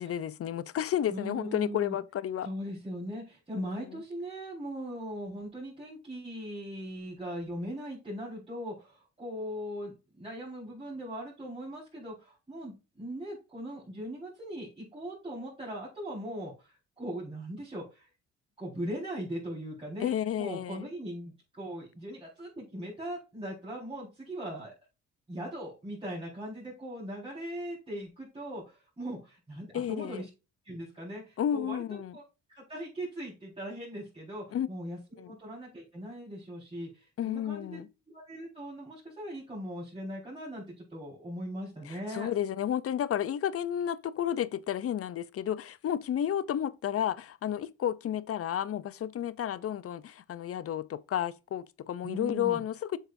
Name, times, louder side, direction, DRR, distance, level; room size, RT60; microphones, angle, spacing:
voice 1, 0.0-2.5 3.6-4.0 20.0-20.9 29.7-30.3 31.4-32.2 34.5-34.7 35.2-35.3 37.2-37.9 41.9-53.0, left 10 dB, 50° left, 0.6 m, -32 dB
voice 2, 1.1-2.0 2.4-18.1 18.6-24.7 25.3-30.3 30.6-32.2 32.5-37.8 38.1-42.3 52.0-52.6, equal, 20° right, 4.6 m, -40 dB
8.0 x 6.5 x 2.6 m
cardioid pair, 90°, 30 cm